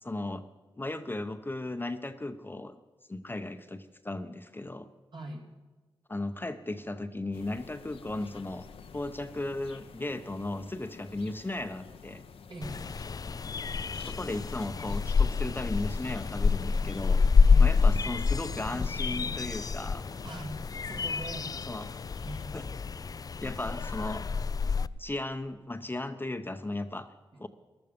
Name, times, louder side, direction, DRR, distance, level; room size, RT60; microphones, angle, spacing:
voice 1, 0.0-0.4 0.8-2.8 3.1-4.9 6.1-8.7 8.9-12.2 14.0-17.2 17.6-20.0 21.7-22.0 22.5-22.7 23.4-24.2 25.0-27.1 27.4-27.5, left 2 dB, 20° left, 9 dB, 0.7 m, -36 dB
voice 2, 5.1-5.5 12.5-12.9 17.5-17.7 20.2-21.5 22.2-22.6 23.4-23.6 27.3-27.5, right 1 dB, 55° right, 1 dB, 2.5 m, -41 dB
sound 1, 7.3-22.5, left 6 dB, 85° left, 0.7 m, -49 dB
sound 2, 12.6-24.9, left 5 dB, 40° left, 0.4 m, -27 dB
15.0 x 12.0 x 5.3 m, 1.3 s
cardioid pair, 55°, 9 cm